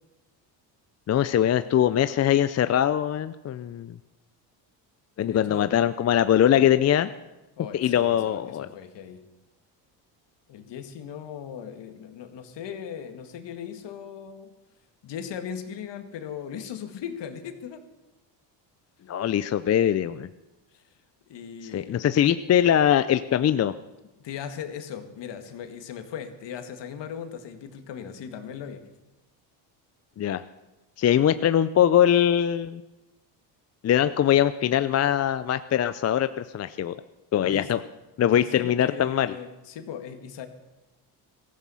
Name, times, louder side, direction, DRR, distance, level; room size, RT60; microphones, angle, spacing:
voice 1, 1.1-3.9 5.2-7.1 7.7-8.7 19.1-20.3 21.6-23.7 30.2-30.4 31.0-32.8 33.8-36.9 37.3-37.8 38.2-39.3, left 10 dB, 35° left, 12 dB, 0.5 m, -22 dB
voice 2, 5.2-5.7 7.6-9.2 10.5-14.5 15.0-17.8 20.7-20.8 21.3-22.0 24.2-28.8 37.4-37.7 38.3-40.5, left 8 dB, 60° left, 7 dB, 2.1 m, -38 dB
17.0 x 15.0 x 5.7 m, 1.1 s
supercardioid pair, 95°, 47 cm